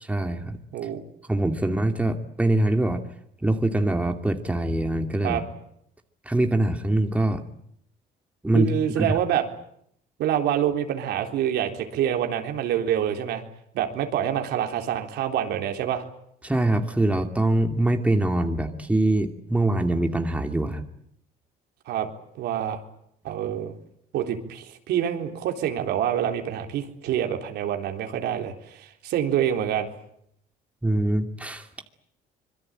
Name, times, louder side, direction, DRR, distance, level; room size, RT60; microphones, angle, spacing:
voice 1, 0.1-0.6 1.3-3.0 3.4-5.4 6.3-7.4 8.4-8.7 9.0-9.1 16.4-20.8 30.8-31.7, right 1 dB, 10° right, 5 dB, 2.6 m, -23 dB
voice 2, 8.5-9.4 10.2-13.4 13.7-16.0 21.9-22.1 22.4-22.8 23.2-23.8 24.1-29.9, right 10 dB, 80° right, 4 dB, 3.8 m, -26 dB
25.5 x 23.0 x 9.1 m, 0.72 s
cardioid pair, 110°, 17 cm